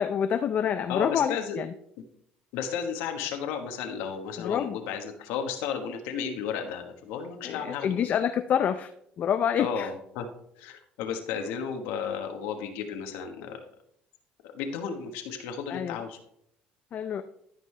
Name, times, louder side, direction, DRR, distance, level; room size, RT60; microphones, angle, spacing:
voice 1, 0.0-1.7 4.4-4.8 7.4-8.9 9.2-9.9 15.7-16.0 16.9-17.2, left 8 dB, 50° left, 8 dB, 0.5 m, -27 dB
voice 2, 0.9-1.6 2.5-8.1 9.6-10.3 10.6-13.6 14.5-16.2, left 7 dB, 90° left, 5 dB, 1.2 m, -33 dB
13.0 x 5.3 x 3.2 m, 0.72 s
cardioid pair, 100°, 4 cm